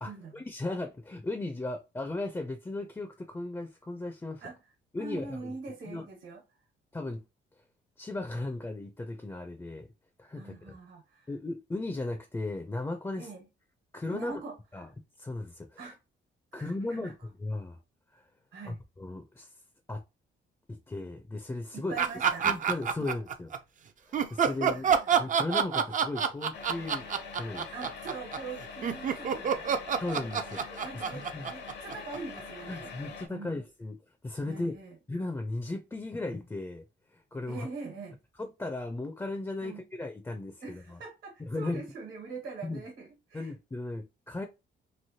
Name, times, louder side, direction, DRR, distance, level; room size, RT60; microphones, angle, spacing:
voice 1, 0.0-4.4 4.9-5.5 5.9-6.1 6.9-7.3 8.0-9.9 10.2-10.8 11.3-13.3 13.9-14.4 14.7-14.9 15.2-15.8 16.5-17.8 18.1-18.2 18.7-19.5 19.9-20.0 20.7-21.9 22.4-23.5 24.1-27.1 27.4-27.7 30.0-30.6 31.1-31.5 32.7-33.9 34.2-34.7 35.1-36.8 37.1-37.7 38.4-41.0 41.4-41.8 42.6-42.8 43.3-44.5, left 2 dB, 15° left, 0.5 m, -36 dB
voice 2, 5.0-6.4 10.4-11.3 13.2-13.4 14.1-14.9 15.8-16.0 16.5-17.1 18.5-18.8 21.7-22.5 24.6-25.1 27.7-29.8 30.0-30.3 30.5-32.9 33.3-33.6 34.5-35.0 37.5-38.2 39.6-39.8 40.6-43.5, right 4 dB, 70° right, 1.3 m, -43 dB
sound 1, 22.0-23.6 24.1-32.4, right 7 dB, 40° right, 0.4 m, -27 dB
sound 2, 26.5-33.3, left 5 dB, 60° left, 0.8 m, -44 dB
3.1 x 2.6 x 2.7 m
cardioid pair, 90°, 20 cm